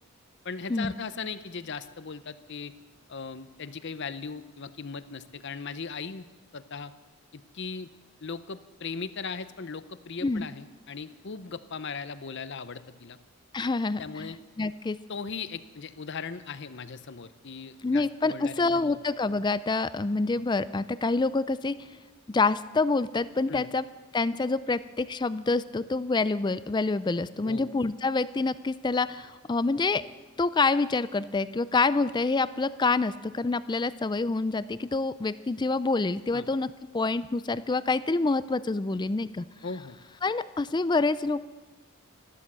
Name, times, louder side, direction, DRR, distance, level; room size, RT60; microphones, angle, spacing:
voice 1, 0.4-2.7 3.1-6.3 6.5-6.9 7.3-7.9 8.2-13.2 14.0-14.4 15.1-19.0 23.5-23.7 27.4-27.7 36.3-36.5 39.6-40.0, left 5 dB, 55° left, 13 dB, 0.7 m, -38 dB
voice 2, 13.5-14.3 14.6-15.0 17.8-21.8 22.3-23.8 24.1-30.0 30.4-39.5 40.2-41.4, left 3 dB, 20° left, 16 dB, 0.4 m, -27 dB
13.0 x 12.5 x 7.5 m, 1.2 s
head